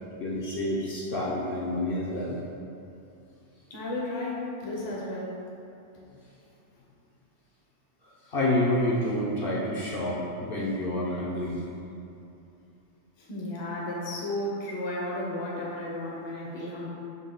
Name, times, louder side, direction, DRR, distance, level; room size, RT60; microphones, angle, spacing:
voice 1, 0.2-2.4 8.3-11.6, left 1 dB, 60° left, -6 dB, 0.8 m, -28 dB
voice 2, 3.7-5.4 13.2-16.9, left 1 dB, 30° left, -4 dB, 0.6 m, -33 dB
5.4 x 2.3 x 3.8 m, 2.7 s
omnidirectional pair, 1.2 m